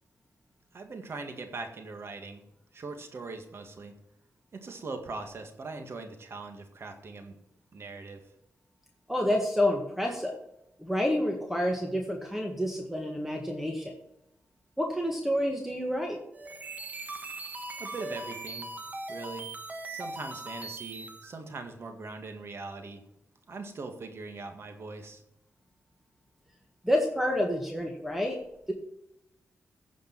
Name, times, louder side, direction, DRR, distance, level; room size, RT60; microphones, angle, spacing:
voice 1, 0.7-2.4 2.7-4.0 4.5-7.4 7.7-8.3 17.8-18.7 19.1-19.5 19.9-23.0 23.5-25.2, right 3 dB, 50° right, 6 dB, 1.9 m, -41 dB
voice 2, 9.1-10.3 10.8-13.9 14.8-16.2 26.8-28.4, left 1 dB, 5° right, 1 dB, 1.7 m, -28 dB
sound 1, 16.3-21.4, right 2 dB, 30° right, 1.5 m, -40 dB
15.5 x 5.2 x 6.0 m, 0.82 s
cardioid pair, 95°, 5 cm